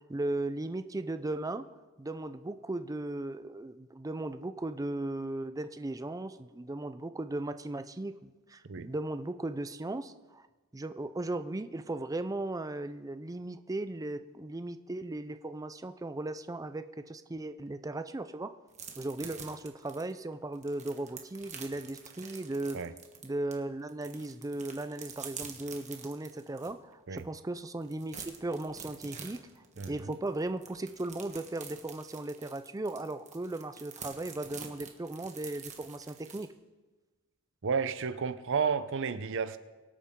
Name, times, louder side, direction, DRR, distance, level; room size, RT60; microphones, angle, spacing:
voice 1, 0.0-1.7 2.0-10.4 10.7-18.6 19.0-22.8 23.2-36.5, right 2 dB, 15° right, 0.5 m, -37 dB
sound 1, 18.7-23.5 23.9-26.7 27.2-27.3 27.6-36.4, right 6 dB, 35° right, 1.4 m, -47 dB
voice 2, 29.8-30.2 37.6-39.6, right 6 dB, 60° right, 0.7 m, -32 dB
23.5 x 8.5 x 3.7 m
head